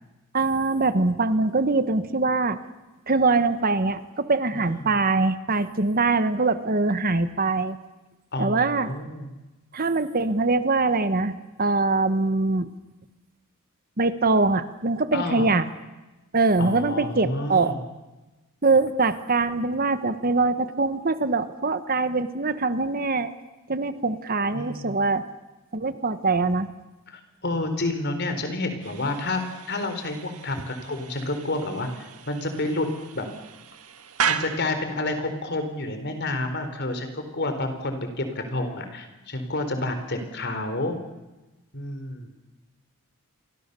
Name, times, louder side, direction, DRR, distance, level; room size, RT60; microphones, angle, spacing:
voice 1, 0.3-2.6 3.1-7.8 8.4-8.9 9.7-11.3 11.6-12.7 14.0-15.6 16.3-17.7 18.6-23.3 23.7-25.2 25.7-26.7, right 3 dB, 40° right, 11 dB, 1.3 m, -23 dB
voice 2, 4.5-4.9 8.3-9.3 15.1-15.5 16.6-17.8 24.5-25.0 27.1-29.4 29.7-32.9 33.1-33.3 34.3-41.0 41.7-42.3, left 2 dB, 50° left, 7 dB, 4.3 m, -29 dB
sound 1, 28.8-35.0, right 7 dB, 85° right, 1.8 m, -34 dB
29.0 x 23.5 x 7.0 m, 1.1 s
head